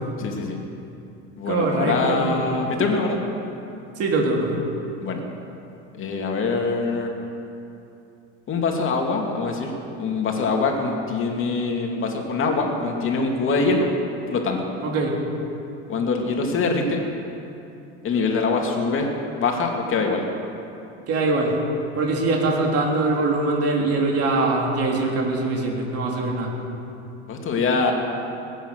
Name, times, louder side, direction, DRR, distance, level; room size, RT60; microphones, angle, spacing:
voice 1, 0.2-0.6 1.4-3.2 5.0-5.2 6.0-7.1 8.5-9.7 10.0-13.9 14.3-14.6 15.9-17.0 18.0-19.1 19.4-20.2 27.3-27.9, left 4 dB, 35° left, 2 dB, 2.7 m, -23 dB
voice 2, 1.5-2.5 4.0-4.5 14.8-15.2 21.1-21.5 22.0-26.5, right 3 dB, 40° right, 0 dB, 3.5 m, -22 dB
20.5 x 9.3 x 6.5 m, 2.7 s
hypercardioid pair, 105°, 35 cm